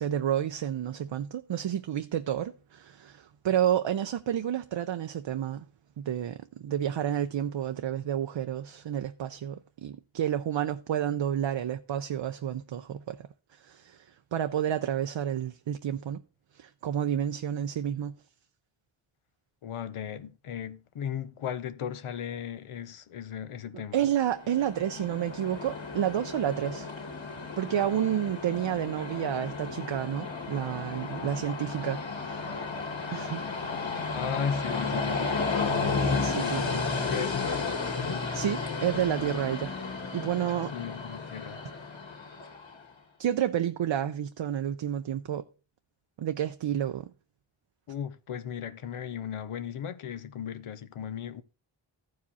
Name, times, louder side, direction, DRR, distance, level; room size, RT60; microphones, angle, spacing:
voice 1, 0.0-5.6 6.0-13.2 13.6-14.1 14.3-16.2 16.5-18.1 23.7-26.9 27.6-32.5 33.1-33.4 36.2-36.6 38.3-39.8 40.1-40.7 43.2-45.4 46.2-47.1, right 10 dB, 65° right, 0.6 m, -30 dB
voice 2, 19.6-24.1 34.1-35.5 36.0-38.3 40.7-41.6 47.9-51.4, left 8 dB, 90° left, 0.8 m, -37 dB
Train, 24.2-42.8, left 4 dB, 65° left, 2.2 m, -33 dB
14.0 x 4.9 x 4.1 m
wide cardioid pair, 70°, 49 cm